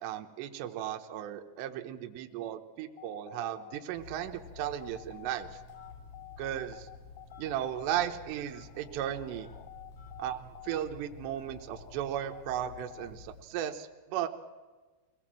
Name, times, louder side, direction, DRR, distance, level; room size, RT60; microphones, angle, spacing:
voice 1, 0.0-5.5 6.4-6.9 7.4-9.5 10.2-14.3, right 11 dB, 75° right, 4 dB, 3.1 m, -36 dB
sound 1, 2.9-13.1, left 16 dB, 75° left, 2.9 m, -51 dB
Telephone, 3.9-13.6, left 3 dB, 40° left, 3.0 m, -51 dB
23.5 x 18.0 x 7.5 m, 1.3 s
omnidirectional pair, 5.2 m